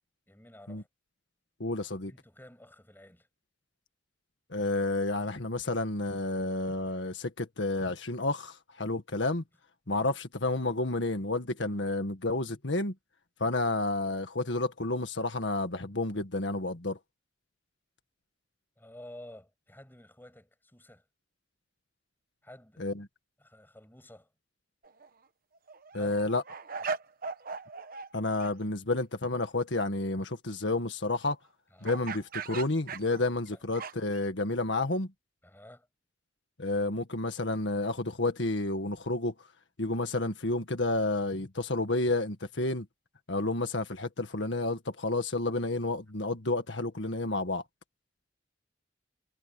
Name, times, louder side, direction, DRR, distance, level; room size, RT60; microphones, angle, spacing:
voice 1, 0.3-0.9 2.1-3.3 18.8-21.0 22.4-22.9 23.4-24.3 25.9-26.2 31.7-32.0 33.5-33.6 35.4-35.9, left 1 dB, 10° left, 6.4 m, -51 dB
voice 2, 1.6-2.1 4.5-9.4 9.9-12.9 13.4-17.0 22.8-23.1 25.9-26.4 28.1-31.4 31.8-35.1 36.6-39.3 39.8-42.9 43.3-47.6, left 2 dB, 80° left, 1.8 m, -30 dB
sound 1, 24.8-25.1 25.5-28.1 28.4-28.5 31.8-34.2, right 5 dB, 50° right, 1.1 m, -39 dB
head